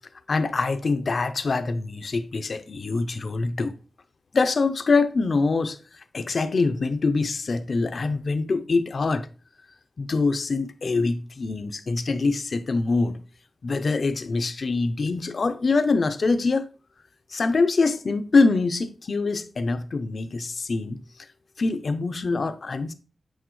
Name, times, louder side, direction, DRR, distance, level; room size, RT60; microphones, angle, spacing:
voice 1, 0.3-3.7 4.3-5.8 6.1-9.3 10.0-13.2 13.6-16.7 17.3-21.0 21.6-22.9, left 3 dB, 50° left, 0.6 m, -24 dB
8.2 x 4.1 x 3.1 m
wide cardioid pair, 130°, 0 cm